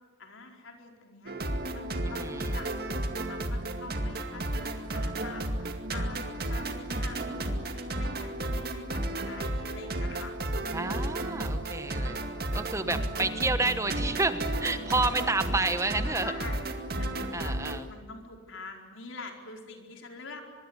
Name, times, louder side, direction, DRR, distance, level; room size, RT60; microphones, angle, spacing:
voice 1, 0.2-10.3 12.4-12.7 16.2-16.7 17.0-17.6 17.9-20.4, left 3 dB, 80° left, 3 dB, 4.8 m, -46 dB
sound 1, 1.3-17.8, right 1 dB, 50° right, 2.3 m, -33 dB
voice 2, 2.0-2.6 10.7-12.2 12.5-16.3 17.3-17.8, right 3 dB, 15° right, 10 dB, 1.2 m, -30 dB
24.5 x 23.0 x 9.8 m, 1.4 s
head